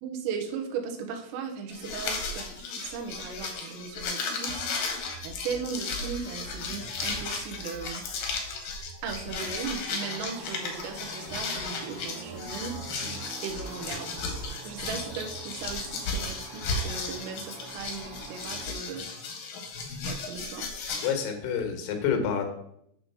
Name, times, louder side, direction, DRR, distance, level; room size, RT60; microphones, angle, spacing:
voice 1, 0.0-8.0 9.0-14.1 14.7-19.1 20.1-20.7, right 6 dB, 90° right, 3 dB, 3.7 m, -37 dB
sound 1, 1.7-21.1, left 3 dB, 65° left, 2.3 m, -35 dB
sound 2, 9.9-18.7, right 3 dB, 60° right, 3.1 m, -45 dB
voice 2, 21.0-22.4, left 7 dB, 80° left, 5 dB, 3.8 m, -28 dB
8.7 x 3.8 x 6.7 m, 0.71 s
omnidirectional pair, 5.8 m